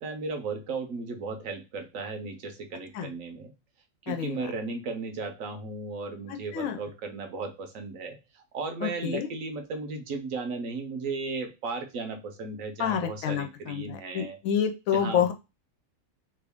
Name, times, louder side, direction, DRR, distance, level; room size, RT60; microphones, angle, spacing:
voice 1, 0.0-3.5 4.0-14.4 14.9-15.3, right 4 dB, 80° right, 5 dB, 1.1 m, -35 dB
voice 2, 4.1-4.4 6.5-6.8 8.8-9.3 12.8-15.3, left 8 dB, 85° left, 7 dB, 1.0 m, -28 dB
3.0 x 2.4 x 3.4 m, 0.26 s
omnidirectional pair, 1.4 m